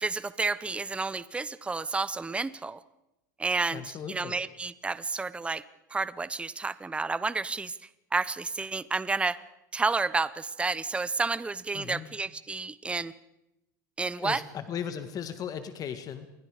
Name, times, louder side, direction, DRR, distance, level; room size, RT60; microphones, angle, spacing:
voice 1, 0.0-2.8 3.4-3.8 4.1-5.6 5.9-7.7 8.1-9.4 9.7-13.1 14.0-14.4, right 3 dB, 10° right, 17 dB, 0.7 m, -30 dB
voice 2, 3.7-4.5 11.7-12.1 14.2-16.3, left 8 dB, 40° left, 9 dB, 1.8 m, -37 dB
28.0 x 22.0 x 5.0 m, 0.89 s
hypercardioid pair, 100°, 10 cm